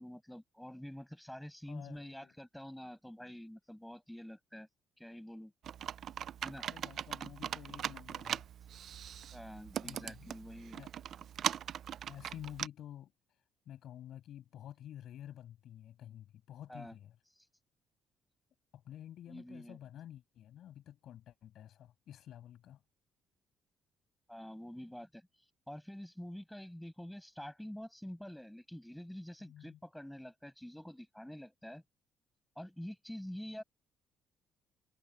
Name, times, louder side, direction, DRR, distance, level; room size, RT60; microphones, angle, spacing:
voice 1, 0.0-4.7 5.0-5.5 6.4-6.7 9.3-10.8 16.7-17.0 19.3-19.8 24.3-25.2 25.7-31.8 32.6-33.6, equal, ahead, 5.3 m, -47 dB
voice 2, 1.7-2.3 6.6-8.5 9.8-10.3 10.7-10.9 12.1-13.1 13.7-17.2 18.7-22.8 29.4-29.8, left 11 dB, 55° left, 7.0 m, -50 dB
Computer keyboard, 5.6-12.7, right 9 dB, 45° right, 0.3 m, -40 dB
cardioid pair, 175°, 0 cm